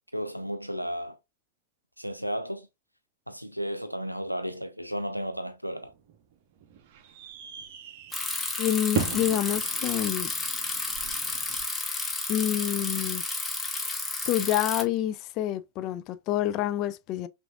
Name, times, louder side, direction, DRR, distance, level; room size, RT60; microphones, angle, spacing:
voice 1, 0.1-1.2 2.0-2.7 3.3-5.9, equal, 90° right, 0.5 m, -33 dB
sound 1, 5.6-11.6, right 7 dB, 50° right, 0.7 m, -38 dB
Bicycle, 8.1-14.8, left 3 dB, 10° left, 0.9 m, -31 dB
voice 2, 8.6-10.3 12.3-13.2 14.3-17.3, left 12 dB, 40° left, 0.3 m, -27 dB
6.0 x 2.5 x 2.3 m
figure-of-eight pair, 90°, 0 cm